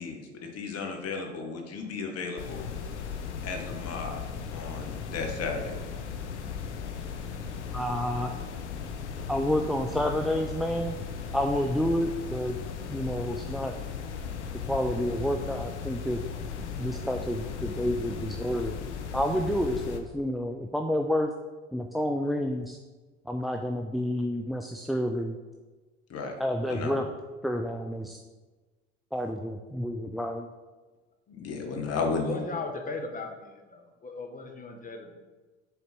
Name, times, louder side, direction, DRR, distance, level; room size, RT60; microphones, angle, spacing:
voice 1, 0.0-2.7 3.4-4.2 4.5-5.8 26.1-26.4 26.7-27.0 31.3-32.4, left 4 dB, 45° left, 2 dB, 1.5 m, -34 dB
sound 1, 2.4-20.0, left 6 dB, 90° left, 0.7 m, -37 dB
voice 2, 7.7-8.3 9.3-11.0 11.3-12.6 12.9-13.7 14.7-16.2 16.8-18.8 19.1-21.3 21.7-22.8 23.3-25.4 26.4-27.1 27.4-28.2 29.1-30.5, equal, ahead, 4 dB, 0.4 m, -29 dB
voice 3, 32.0-35.2, left 3 dB, 25° left, 3 dB, 1.2 m, -38 dB
6.9 x 4.2 x 4.5 m, 1.3 s
hypercardioid pair, 70°, 33 cm